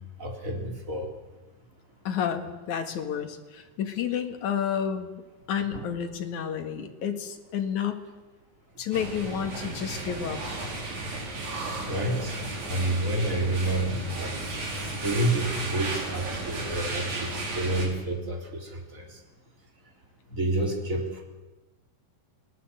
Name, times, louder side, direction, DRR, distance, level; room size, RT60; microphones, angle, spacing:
voice 1, 0.2-1.1 5.7-5.8 11.8-12.3 12.6-19.2 20.3-21.2, right 1 dB, 20° right, 1 dB, 3.9 m, -29 dB
voice 2, 2.0-5.1 5.5-8.1 8.8-10.4, left 8 dB, 55° left, 6 dB, 2.8 m, -30 dB
sound 1, 8.9-17.9, right 2 dB, 45° right, 5.6 m, -34 dB
27.0 x 19.5 x 8.0 m, 1.1 s
omnidirectional pair, 4.7 m